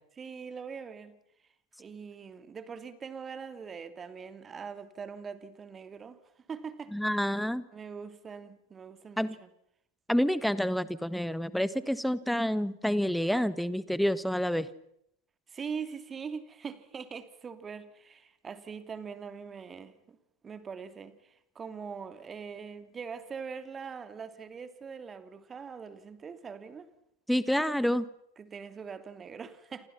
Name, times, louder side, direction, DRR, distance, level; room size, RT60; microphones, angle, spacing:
voice 1, 0.2-1.1 1.8-6.2 6.5-6.9 7.7-9.5 15.5-20.2 20.4-26.9 28.4-29.9, right 6 dB, 20° right, 2.9 m, -42 dB
voice 2, 6.9-7.6 9.2-9.3 10.1-14.7 27.3-28.1, equal, ahead, 1.5 m, -28 dB
29.5 x 27.5 x 5.9 m
figure-of-eight pair, 85°, 0 cm